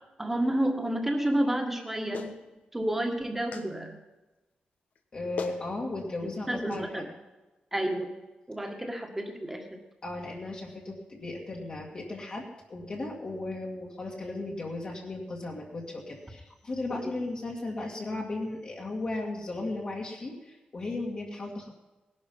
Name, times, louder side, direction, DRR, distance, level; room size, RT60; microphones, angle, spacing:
voice 1, 0.2-2.4 2.7-4.0 6.5-7.1 7.7-8.1 8.5-9.8, right 1 dB, 10° right, 3 dB, 1.8 m, -30 dB
Clapping, 2.1-2.4 3.5-3.7 4.9-5.0 5.4-5.6 6.7-6.8, left 5 dB, 65° left, 1.3 m, -37 dB
voice 2, 5.1-7.0 10.0-12.4 12.7-21.7, left 2 dB, 35° left, -2 dB, 2.1 m, -36 dB
19.0 x 11.5 x 5.5 m, 1.1 s
wide cardioid pair, 165°, 3 cm